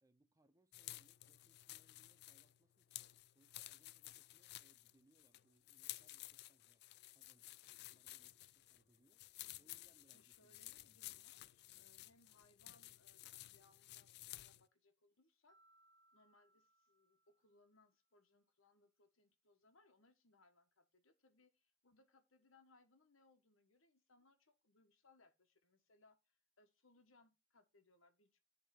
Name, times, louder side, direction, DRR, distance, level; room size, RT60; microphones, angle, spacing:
voice 1, 0.0-6.8 7.1-7.6 7.9-9.2 9.6-11.1, right 1 dB, 15° right, 0.5 m, -76 dB
sound 1, 0.7-14.7, left 16 dB, 55° left, 0.3 m, -55 dB
voice 2, 10.1-15.6 16.1-28.4, left 3 dB, 75° left, 1.5 m, -72 dB
Mallet percussion, 15.5-17.9, right 2 dB, 20° left, 0.8 m, -74 dB
10.5 x 3.7 x 5.2 m
head